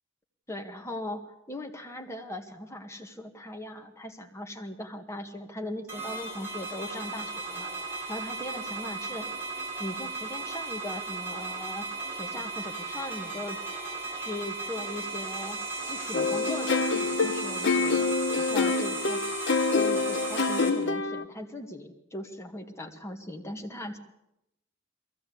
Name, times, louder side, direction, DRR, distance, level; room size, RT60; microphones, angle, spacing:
voice 1, 0.5-9.3 9.8-13.6 14.1-19.2 19.7-24.0, left 1 dB, 15° left, 4 dB, 1.8 m, -39 dB
sound 1, 5.9-20.7, right 3 dB, 10° right, 6.4 m, -36 dB
sound 2, 16.1-21.2, left 4 dB, 65° left, 1.0 m, -26 dB
22.5 x 16.0 x 8.5 m, 0.85 s
head